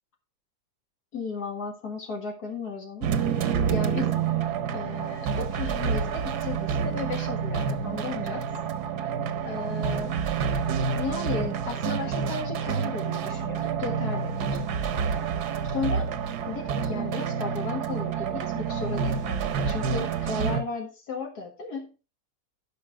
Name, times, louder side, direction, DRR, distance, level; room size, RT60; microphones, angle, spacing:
voice 1, 1.1-3.1 3.7-4.2 4.7-8.5 9.4-10.1 10.9-15.0 15.6-16.1 16.5-21.9, left 4 dB, 75° left, 1 dB, 2.2 m, -35 dB
sound 1, 3.0-20.6, right 6 dB, 80° right, 1.4 m, -28 dB
11.5 x 5.7 x 4.5 m, 0.32 s
omnidirectional pair, 1.7 m